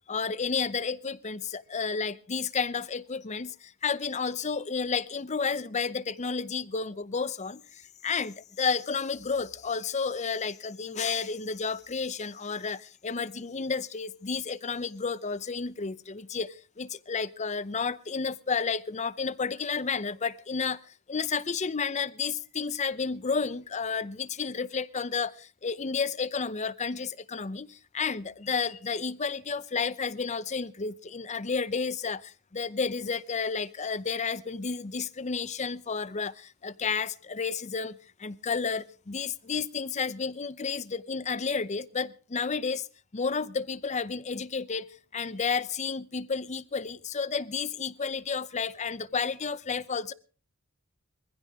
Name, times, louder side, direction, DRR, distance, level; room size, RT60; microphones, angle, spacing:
voice 1, 0.1-42.9 43.1-50.1, left 5 dB, 35° left, 0.6 m, -31 dB
21.0 x 15.5 x 3.6 m
head